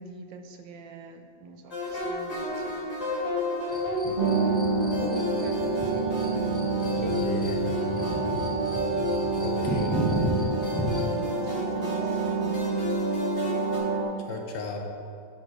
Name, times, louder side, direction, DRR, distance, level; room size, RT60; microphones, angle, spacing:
voice 1, 0.0-2.8 5.0-5.6 7.0-7.2 7.7-8.3 10.7-12.8, right 3 dB, 85° right, 6 dB, 1.4 m, -44 dB
sound 1, 1.7-13.8, left 2 dB, 40° left, 2.5 m, -32 dB
sound 2, 3.7-11.2, equal, 5° left, 0.8 m, -34 dB
voice 2, 4.0-4.4 7.0-7.6 9.4-10.0 14.3-14.8, left 3 dB, 70° left, 2 dB, 1.6 m, -35 dB
sound 3, 4.2-14.0, right 4 dB, 35° right, 1.2 m, -28 dB
11.0 x 4.3 x 4.9 m, 2.5 s
omnidirectional pair, 2.0 m